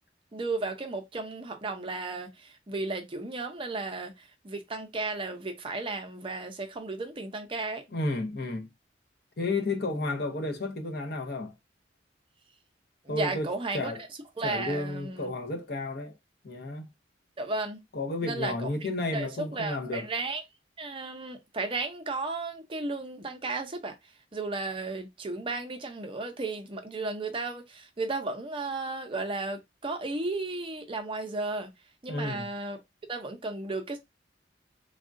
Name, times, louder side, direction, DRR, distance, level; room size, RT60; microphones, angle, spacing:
voice 1, 0.3-7.8 13.0-13.9 14.4-15.3 17.4-17.8 18.2-20.4 20.8-24.0 24.3-31.7 32.0-32.8 33.1-34.0, right 3 dB, 30° right, 0.5 m, -34 dB
voice 2, 7.9-8.7 9.4-11.5 13.1-13.5 13.7-14.0 14.4-16.1 16.4-16.9 17.9-20.1 32.1-32.5, left 2 dB, 60° left, 0.7 m, -32 dB
3.5 x 2.3 x 2.5 m
head